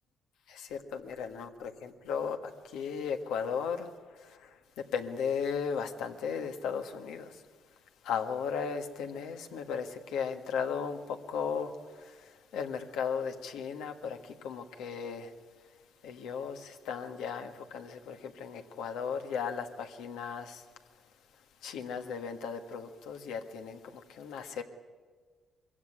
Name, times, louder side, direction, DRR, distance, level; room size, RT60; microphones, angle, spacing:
voice 1, 0.5-7.4 8.0-15.3 16.0-20.7 21.6-24.6, left 6 dB, 90° left, 1.6 m, -36 dB
22.0 x 15.5 x 9.8 m
cardioid pair, 90°, 0 cm